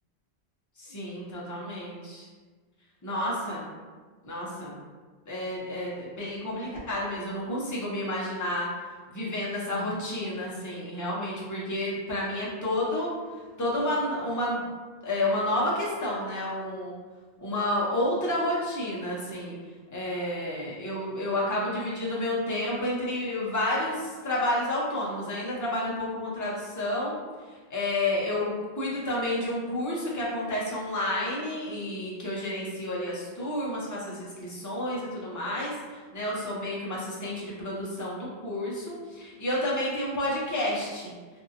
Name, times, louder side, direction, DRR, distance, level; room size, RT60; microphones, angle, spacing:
voice 1, 0.8-2.3 3.0-3.6 4.2-4.8 5.3-8.7 9.1-13.1 13.6-14.6 15.0-16.9 17.4-19.6 19.9-27.2 27.5-41.1, left 1 dB, 20° left, -6 dB, 0.5 m, -30 dB
2.7 x 2.6 x 2.5 m, 1.4 s
omnidirectional pair, 1.1 m